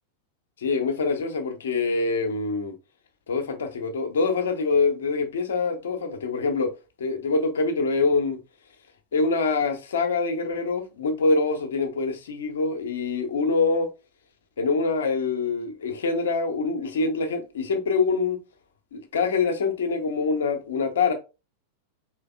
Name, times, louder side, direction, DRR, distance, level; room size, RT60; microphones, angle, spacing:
voice 1, 0.6-2.7 3.3-8.4 9.1-13.9 14.6-18.4 18.9-21.1, left 4 dB, 65° left, 0.8 m, -25 dB
4.4 x 3.3 x 2.3 m
figure-of-eight pair, 90°, 0 cm